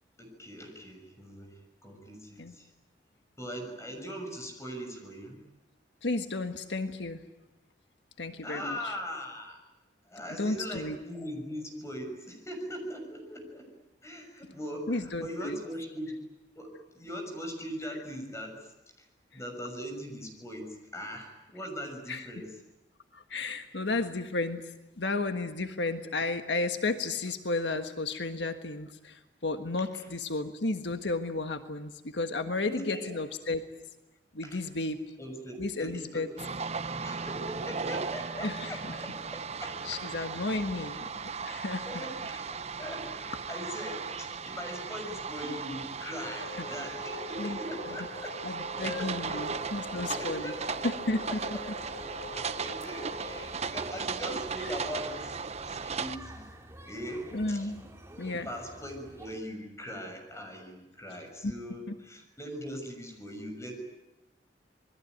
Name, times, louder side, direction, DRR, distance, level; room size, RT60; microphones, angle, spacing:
voice 1, 0.2-2.7 3.4-5.4 8.4-9.6 10.1-13.7 14.0-16.2 16.5-18.7 19.0-19.1 19.3-22.5 29.8-30.0 32.7-33.2 34.4-34.6 35.2-36.3 36.9-40.3 40.7-40.9 41.9-48.4 48.8-49.5 50.1-50.6 51.3-51.6 52.3-56.5 56.9-57.7 58.3-63.8, equal, 15° left, 4 dB, 6.4 m, -40 dB
voice 2, 6.0-7.2 8.2-8.9 10.4-11.0 14.9-15.6 22.1-22.3 23.1-24.6 25.0-33.6 34.3-35.0 35.6-36.3 38.4-38.7 39.8-41.1 41.4-41.9 46.6-46.7 47.4-47.6 48.4-50.5 50.8-51.3 57.3-57.9 58.2-58.5 61.4-61.5 61.9-62.0, left 2 dB, 85° left, 7 dB, 1.5 m, -33 dB
sound 1, 36.4-56.2, right 5 dB, 40° right, 0.9 m, -37 dB
sound 2, 46.2-53.5, left 1 dB, 50° left, 1.7 m, -44 dB
sound 3, 49.3-59.4, right 1 dB, 15° right, 2.6 m, -50 dB
27.5 x 21.0 x 9.4 m, 0.95 s
head